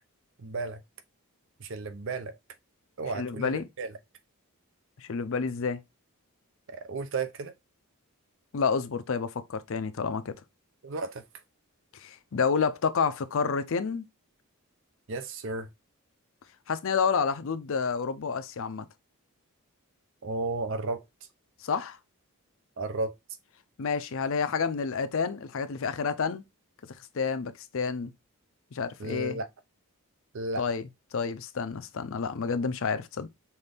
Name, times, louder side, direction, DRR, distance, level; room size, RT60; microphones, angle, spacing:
voice 1, 0.4-0.8 1.6-2.4 3.0-3.9 6.7-7.5 10.8-11.2 15.1-15.7 20.2-21.0 22.8-23.1 29.0-29.5 30.3-30.6, right 3 dB, 60° right, 0.6 m, -33 dB
voice 2, 3.1-3.7 5.0-5.8 8.5-10.3 11.9-14.0 16.7-18.9 21.6-22.0 23.8-26.4 27.1-28.1 28.7-29.4 30.6-33.3, left 5 dB, 60° left, 0.5 m, -29 dB
5.7 x 2.6 x 3.4 m
head